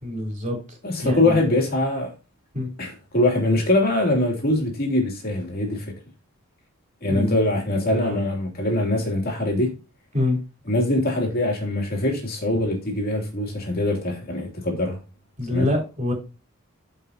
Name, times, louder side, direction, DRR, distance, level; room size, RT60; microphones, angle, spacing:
voice 1, 0.0-0.6 1.0-1.4 2.5-2.7 7.1-8.2 10.1-10.4 15.4-16.1, left 1 dB, 35° right, 3.6 m, -26 dB
voice 2, 0.8-2.1 2.8-6.0 7.0-9.8 10.7-15.0 15.5-15.7, left 1 dB, 45° left, 2.9 m, -23 dB
13.5 x 5.2 x 2.8 m
head